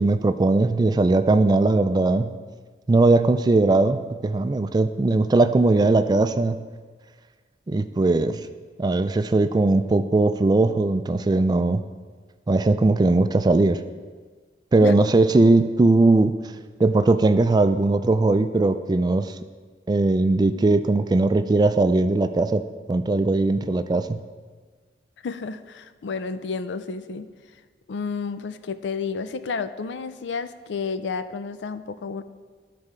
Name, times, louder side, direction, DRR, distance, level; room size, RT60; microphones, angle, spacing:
voice 1, 0.0-2.3 2.9-6.6 7.7-8.4 8.8-11.8 12.5-13.8 14.7-16.4 16.8-19.3 19.9-22.6 22.9-24.2, right 2 dB, 25° right, 10 dB, 0.3 m, -19 dB
voice 2, 25.2-27.3 27.9-32.2, left 5 dB, 90° left, 12 dB, 0.4 m, -31 dB
12.5 x 4.2 x 4.9 m, 1.5 s
head